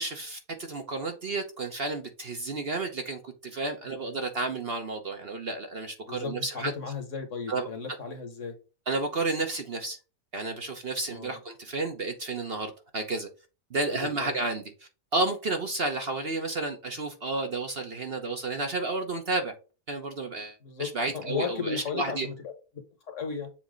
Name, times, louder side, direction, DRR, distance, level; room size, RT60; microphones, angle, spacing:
voice 1, 0.0-6.7 7.5-7.7 8.9-10.0 10.3-13.3 13.7-14.6 15.1-19.5 19.9-22.3, right 3 dB, 45° right, 1.0 m, -31 dB
voice 2, 6.0-8.5 11.1-11.4 13.9-14.3 20.6-22.5 23.1-23.5, left 6 dB, 55° left, 1.5 m, -35 dB
7.3 x 2.8 x 5.1 m
omnidirectional pair, 1.6 m